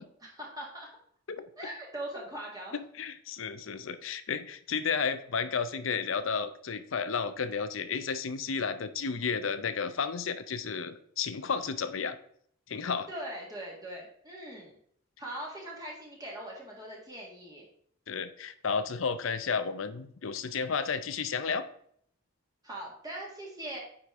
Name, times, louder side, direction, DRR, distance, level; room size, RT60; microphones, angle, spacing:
voice 1, 0.2-0.9 1.6-2.7 13.1-14.7 15.2-17.7 22.6-23.8, right 1 dB, 20° right, -3 dB, 1.7 m, -41 dB
voice 2, 3.0-12.2 12.7-13.1 18.1-21.7, left 5 dB, 70° left, 12 dB, 0.6 m, -32 dB
9.2 x 5.1 x 3.6 m, 0.65 s
head